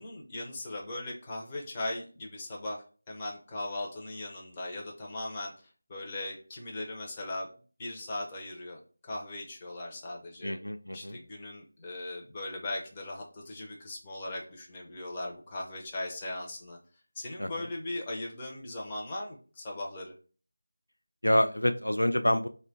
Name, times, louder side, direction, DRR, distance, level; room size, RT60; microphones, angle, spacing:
voice 1, 0.0-5.5 5.9-7.5 7.8-10.6 10.9-16.8 17.2-20.1, left 2 dB, 20° left, -2 dB, 0.5 m, -38 dB
voice 2, 10.4-11.2 17.4-17.5 21.2-22.5, left 1 dB, 80° left, 8 dB, 0.3 m, -27 dB
2.9 x 2.2 x 3.8 m, 0.39 s
figure-of-eight pair, 165°, 0 cm